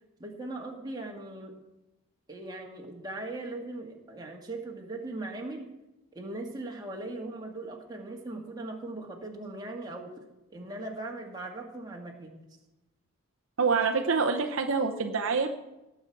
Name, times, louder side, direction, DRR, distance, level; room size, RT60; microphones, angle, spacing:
voice 1, 0.2-1.5 2.3-5.7 6.1-10.1 10.5-12.4, right 2 dB, 20° right, 0 dB, 1.8 m, -39 dB
voice 2, 13.6-15.5, right 4 dB, 65° right, 4 dB, 0.8 m, -26 dB
19.0 x 7.3 x 4.7 m, 0.97 s
head